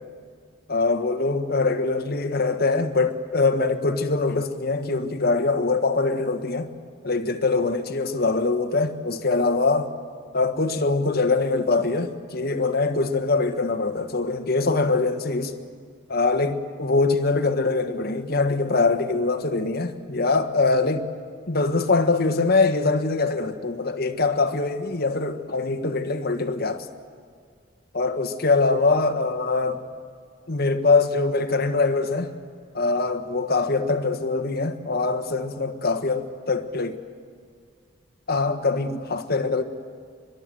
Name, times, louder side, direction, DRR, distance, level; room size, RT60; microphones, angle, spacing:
voice 1, 0.7-6.7 7.0-9.9 10.3-15.5 16.1-21.1 21.5-26.9 27.9-29.8 30.5-32.3 32.7-37.0 38.3-39.6, left 3 dB, 50° left, 1.4 m, -23 dB
25.0 x 22.0 x 7.7 m
head